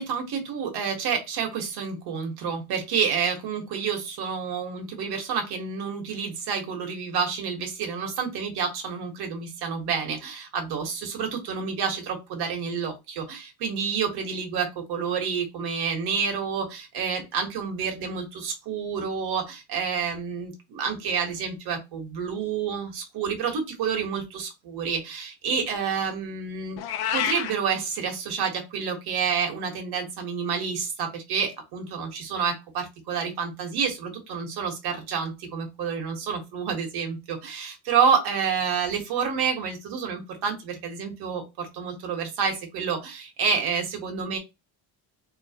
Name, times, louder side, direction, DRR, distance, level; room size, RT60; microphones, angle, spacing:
voice 1, 0.0-26.8 27.1-44.4, right 6 dB, 70° right, 3 dB, 1.6 m, -29 dB
Meow, 26.8-27.5, left 9 dB, 70° left, 0.7 m, -27 dB
3.9 x 3.1 x 2.9 m, 0.24 s
cardioid pair, 165°, 40 cm